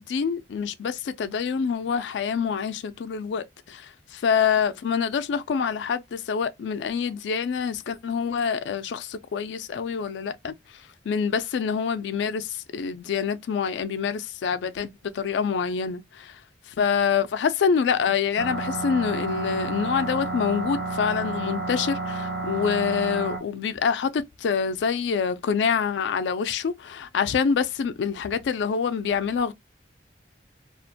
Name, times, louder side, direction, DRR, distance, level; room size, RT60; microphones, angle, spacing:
voice 1, 0.0-10.5 11.1-16.3 16.8-29.5, left 6 dB, 80° left, 0.3 m, -26 dB
sound 1, 18.4-23.4, right 3 dB, 65° right, 0.8 m, -30 dB
2.4 x 2.1 x 2.7 m
head